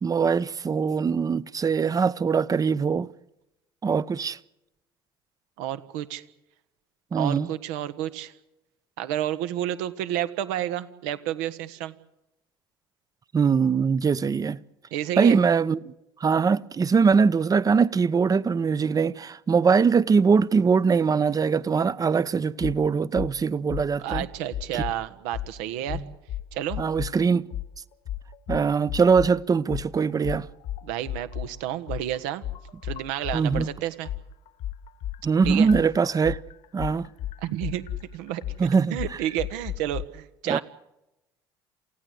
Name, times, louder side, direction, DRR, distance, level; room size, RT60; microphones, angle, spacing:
voice 1, 0.0-3.1 3.8-4.4 7.1-7.5 13.3-14.6 15.2-15.9 16.2-24.3 24.7-24.8 25.9-26.0 26.8-27.5 28.5-30.5 33.3-33.7 35.2-36.4 36.7-37.1 38.6-39.0 40.5-40.6, right 5 dB, 30° right, 0.9 m, -22 dB
voice 2, 5.6-6.2 7.2-8.3 9.0-11.9 14.9-15.4 24.0-26.0 26.5-26.8 30.8-32.4 32.8-34.1 35.4-35.7 37.4-37.8 38.1-38.4 38.9-40.6, right 12 dB, 70° right, 1.6 m, -30 dB
sound 1, 22.6-22.8 23.1-23.3 23.7-25.0 25.3-25.5 25.9-27.1 27.5-27.7 28.1-29.3 29.7-33.7 34.0-40.0, left 12 dB, 60° left, 1.6 m, -33 dB
28.0 x 16.5 x 8.0 m
hypercardioid pair, 60°, 12 cm